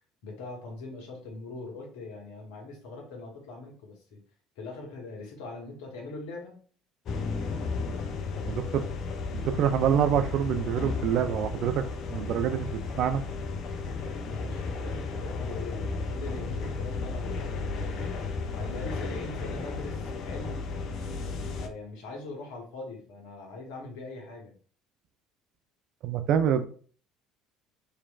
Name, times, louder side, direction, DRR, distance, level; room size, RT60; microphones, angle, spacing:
voice 1, 0.2-4.2 4.6-6.6 14.3-18.1 18.5-20.6 21.5-24.5, left 3 dB, 70° left, 0.9 m, -41 dB
sound 1, 7.1-21.7, left 4 dB, 55° left, 0.4 m, -34 dB
voice 2, 8.5-8.8 9.3-11.8 12.1-13.2 26.0-26.6, right 9 dB, 60° right, 0.3 m, -26 dB
2.9 x 2.5 x 2.3 m
hypercardioid pair, 60°, 0 cm